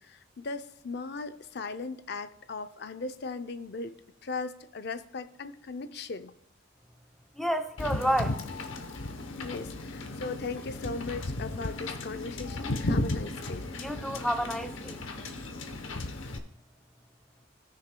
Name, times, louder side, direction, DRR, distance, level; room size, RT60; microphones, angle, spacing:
voice 1, 0.0-3.9 4.2-6.3 9.4-13.7, left 4 dB, 55° left, 10 dB, 0.5 m, -38 dB
voice 2, 7.4-8.4 13.8-15.0, equal, ahead, 5 dB, 0.5 m, -30 dB
Wind / Boat Water vehicle, 7.8-16.4, left 2 dB, 75° left, 0.9 m, -35 dB
17.5 x 6.5 x 2.2 m, 0.78 s
head